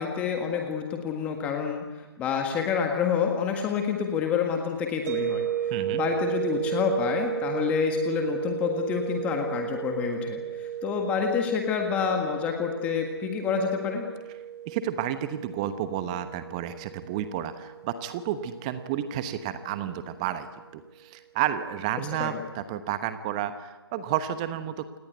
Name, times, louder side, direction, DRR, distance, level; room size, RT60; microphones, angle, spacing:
voice 1, 0.0-5.5 5.9-14.1 22.2-22.4, left 7 dB, 10° left, 3 dB, 1.7 m, -28 dB
sound 1, 5.1-20.0, right 11 dB, 35° right, 3.0 m, -34 dB
voice 2, 5.7-6.0 14.7-20.5 20.7-25.0, right 11 dB, 15° right, 11 dB, 1.0 m, -31 dB
28.5 x 19.0 x 8.1 m, 1.1 s
figure-of-eight pair, 155°, 14 cm